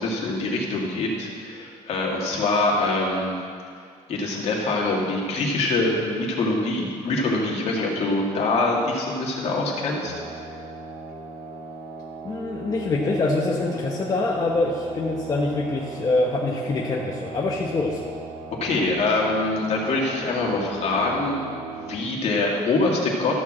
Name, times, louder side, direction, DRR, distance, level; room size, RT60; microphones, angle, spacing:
voice 1, 0.0-3.4 4.1-10.1 18.6-21.4 21.7-23.4, left 2 dB, 50° left, -2 dB, 2.1 m, -24 dB
sound 1, 10.1-21.9, right 5 dB, 55° right, 1.7 m, -38 dB
voice 2, 12.2-18.0, left 2 dB, 25° left, -2 dB, 1.0 m, -24 dB
13.5 x 4.7 x 7.4 m, 2.2 s
cardioid pair, 135°, 14 cm